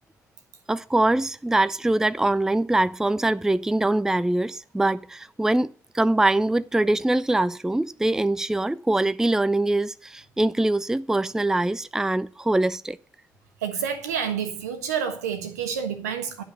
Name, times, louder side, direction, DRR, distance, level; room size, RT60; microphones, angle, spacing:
voice 1, 0.7-13.0, right 2 dB, 5° right, 0.4 m, -23 dB
voice 2, 13.6-16.4, right 7 dB, 75° right, 1.3 m, -29 dB
11.5 x 5.5 x 8.1 m
figure-of-eight pair, 45°, 9 cm